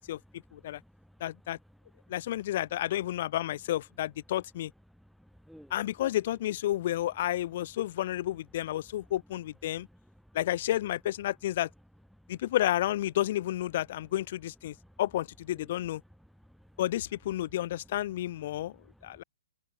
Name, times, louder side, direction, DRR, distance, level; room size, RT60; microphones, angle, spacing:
voice 1, 0.0-2.2 4.9-5.7 9.7-10.4 12.1-12.4 14.7-15.0 15.6-15.7 16.2-16.8 18.5-19.2, equal, ahead, 2.5 m, -59 dB
voice 2, 1.2-1.6 2.1-4.7 5.7-9.9 10.3-11.7 12.3-16.0 16.8-18.7 19.0-19.2, left 13 dB, 45° left, 0.8 m, -31 dB
open air
figure-of-eight pair, 125°, 0 cm